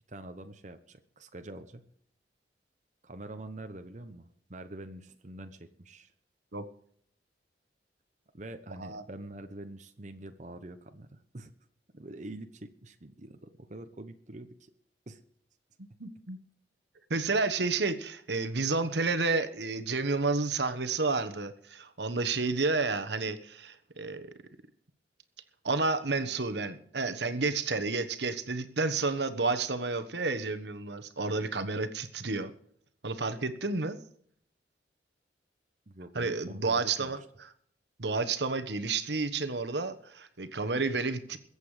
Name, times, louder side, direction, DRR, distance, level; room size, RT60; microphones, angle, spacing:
voice 1, 0.1-1.8 3.0-6.1 8.3-11.5 11.9-14.7 15.1-15.2 35.9-37.1, right 1 dB, 40° right, 7 dB, 1.0 m, -45 dB
voice 2, 16.0-16.4 17.1-24.3 25.6-32.5 33.0-34.0 36.1-37.2 38.0-41.4, right 3 dB, 75° right, 10 dB, 1.2 m, -30 dB
22.0 x 8.3 x 5.0 m, 0.65 s
head